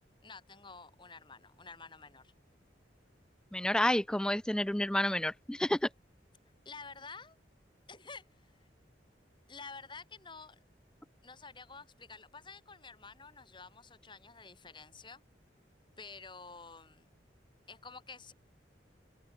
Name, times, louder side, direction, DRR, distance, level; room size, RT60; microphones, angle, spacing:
voice 1, 0.2-2.3 6.6-7.4 7.9-8.6 9.5-10.6 11.2-15.2 16.0-17.1 17.7-18.3, left 4 dB, 25° left, 4.8 m, -50 dB
voice 2, 3.5-5.9, left 1 dB, 5° left, 0.4 m, -30 dB
head